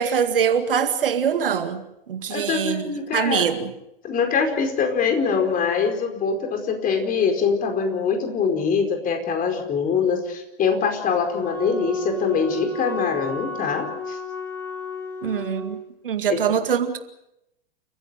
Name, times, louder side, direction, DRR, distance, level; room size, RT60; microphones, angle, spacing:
voice 1, 0.0-1.8 2.1-3.7 15.2-15.8 16.0-17.0, right 7 dB, 70° right, 2.1 m, -23 dB
voice 2, 2.3-3.4 4.0-14.2 16.3-16.4, left 6 dB, 30° left, 4.8 m, -23 dB
Wind instrument woodwind instrument, 11.4-15.7, left 1 dB, 5° left, 6.6 m, -32 dB
29.5 x 15.5 x 7.8 m
figure-of-eight pair, 95°, 29 cm